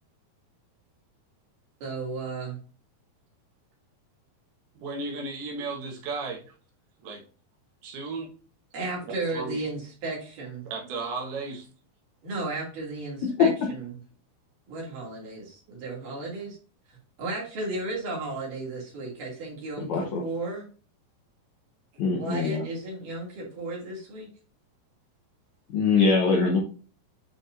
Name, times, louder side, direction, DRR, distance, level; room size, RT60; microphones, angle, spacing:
voice 1, 1.8-2.6 8.7-10.7 12.2-13.9 14.7-16.6 16.9-20.7 22.2-24.3, right 2 dB, 60° right, -4 dB, 3.8 m, -34 dB
voice 2, 4.8-6.4 7.0-7.2 7.8-8.3 9.3-9.5 10.7-11.7, right 3 dB, 80° right, 0 dB, 3.3 m, -34 dB
voice 3, 19.8-20.2 22.0-22.6 25.7-26.6, left 5 dB, 80° left, -1 dB, 1.7 m, -22 dB
8.7 x 4.2 x 2.6 m, 0.38 s
omnidirectional pair, 4.4 m